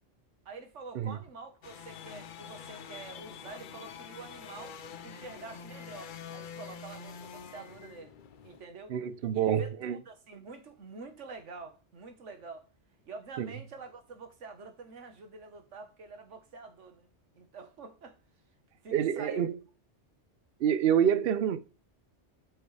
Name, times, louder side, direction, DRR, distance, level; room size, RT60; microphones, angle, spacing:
voice 1, 0.4-8.1 8.4-9.0 9.3-12.6 13.0-17.1 17.3-18.2 18.8-19.4, right 4 dB, 85° right, 1.6 m, -47 dB
sound 1, 1.6-8.6, left 7 dB, 55° left, 0.6 m, -46 dB
voice 2, 8.9-10.0 13.4-13.5 18.9-19.6 20.6-21.6, right 9 dB, 60° right, 0.8 m, -27 dB
8.1 x 4.6 x 3.3 m
omnidirectional pair, 1.2 m